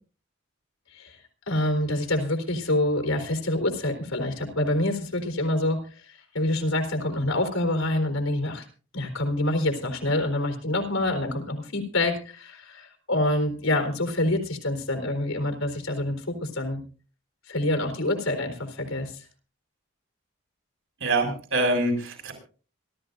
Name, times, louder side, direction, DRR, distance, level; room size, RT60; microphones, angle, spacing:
voice 1, 1.5-8.6 8.9-16.8 17.5-19.2, left 1 dB, 85° left, 5 dB, 4.0 m, -26 dB
voice 2, 21.0-22.3, right 2 dB, 70° right, 2 dB, 6.6 m, -25 dB
26.0 x 13.5 x 2.6 m, 0.38 s
head